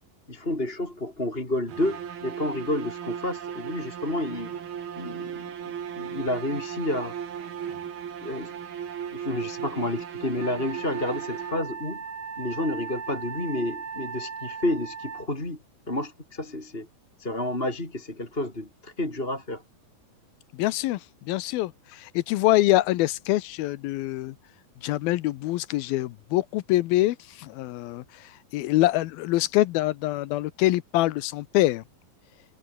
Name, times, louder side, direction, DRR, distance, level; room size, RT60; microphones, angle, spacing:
voice 1, 0.3-4.5 5.0-5.4 5.9-7.2 8.2-8.5 9.1-12.0 12.4-15.6 15.9-16.9 17.2-19.6, left 1 dB, 15° left, 4.4 m, -30 dB
sound 1, 1.7-11.9, right 8 dB, 80° right, 4.7 m, -36 dB
Wind instrument woodwind instrument, 10.4-15.3, right 5 dB, 35° right, 2.3 m, -38 dB
voice 2, 20.5-21.0 21.3-24.4 24.8-31.8, left 17 dB, 80° left, 2.7 m, -25 dB
omnidirectional pair, 4.3 m